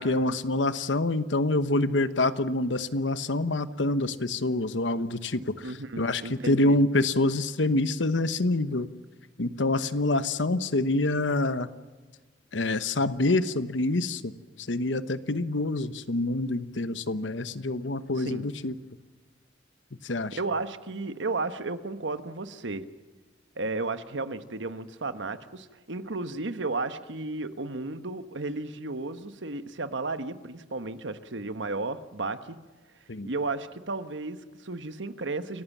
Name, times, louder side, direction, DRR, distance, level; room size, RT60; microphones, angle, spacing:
voice 1, 0.0-8.9 9.4-11.7 12.5-14.3 14.6-18.7 20.0-20.4 33.1-33.3, left 2 dB, 80° left, 13 dB, 1.1 m, -26 dB
voice 2, 5.6-6.8 18.2-18.5 20.3-22.8 23.6-32.6 33.2-35.6, right 3 dB, 75° right, 11 dB, 1.3 m, -33 dB
29.5 x 14.5 x 7.3 m, 1.3 s
head